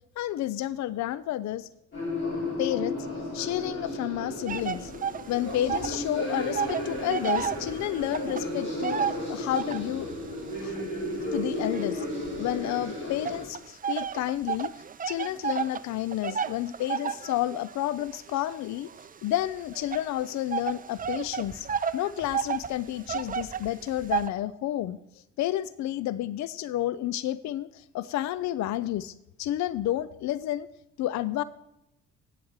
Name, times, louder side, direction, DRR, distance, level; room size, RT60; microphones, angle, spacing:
voice 1, 0.2-1.7 2.6-3.1 3.3-4.9 5.3-10.1 10.6-10.7 11.3-12.1 12.4-14.7 15.1-18.9 19.2-21.7 21.9-25.0 25.4-30.7 31.0-31.4, left 13 dB, 65° left, 17 dB, 0.5 m, -30 dB
sound 1, 1.9-13.4, left 1 dB, 40° left, 5.2 m, -34 dB
sound 2, 4.5-6.0 6.3-10.0 10.6-12.6 13.2-24.3, right 7 dB, 30° right, 0.5 m, -32 dB
8.7 x 7.8 x 7.3 m, 0.84 s
cardioid pair, 90°, 30 cm